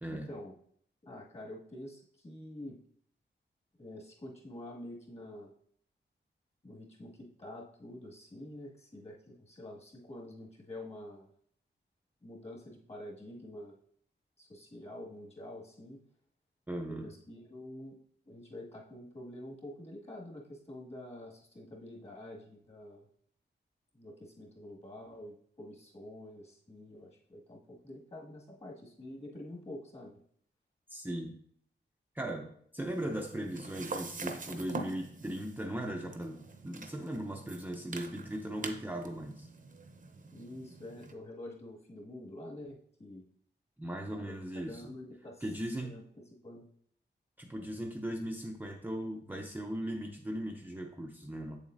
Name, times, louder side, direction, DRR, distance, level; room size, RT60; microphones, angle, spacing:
voice 1, 0.1-0.5 1.0-2.8 3.8-5.5 6.6-11.3 12.2-13.7 14.4-16.0 17.0-17.9 18.3-23.1 23.9-30.2 40.3-43.2 44.2-44.4 44.7-45.5 45.8-46.0 46.4-46.6, left 1 dB, 35° left, -3 dB, 1.9 m, -47 dB
voice 2, 16.7-17.1 30.9-31.4 32.1-39.5 43.8-44.8 45.4-46.0 47.4-51.6, right 1 dB, 10° right, 0 dB, 0.6 m, -38 dB
sound 1, 32.8-41.1, right 3 dB, 45° right, 0.7 m, -45 dB
7.8 x 7.2 x 2.6 m, 0.63 s
wide cardioid pair, 150°, 19 cm